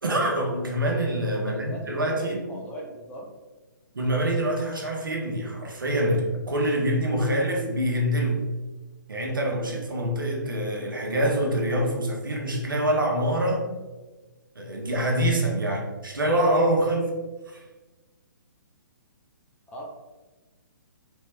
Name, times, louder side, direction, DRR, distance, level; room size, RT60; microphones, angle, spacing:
voice 1, 0.0-2.4 3.9-8.4 9.1-13.7 14.5-17.1 17.5-17.6, right 1 dB, 85° right, 0 dB, 1.1 m, -25 dB
voice 2, 1.3-3.3 19.7-19.9, equal, 10° left, -2 dB, 0.7 m, -39 dB
3.5 x 3.0 x 3.4 m, 1.2 s
hypercardioid pair, 135°, 11 cm